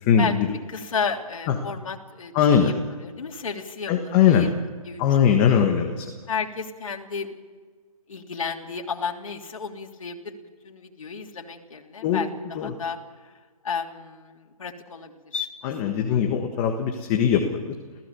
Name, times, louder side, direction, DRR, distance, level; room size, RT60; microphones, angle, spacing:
voice 1, 0.7-4.5 4.8-5.2 5.5-5.7 6.3-7.3 8.1-10.4 10.6-13.3 13.6-15.7 16.0-16.2, left 5 dB, 60° left, 3 dB, 3.2 m, -33 dB
voice 2, 2.3-2.7 3.9-4.5 5.0-6.0 12.0-12.2 12.6-12.7 15.6-17.7, left 8 dB, 15° left, 4 dB, 1.4 m, -20 dB
29.5 x 16.5 x 7.0 m, 1.5 s
hypercardioid pair, 160°, 19 cm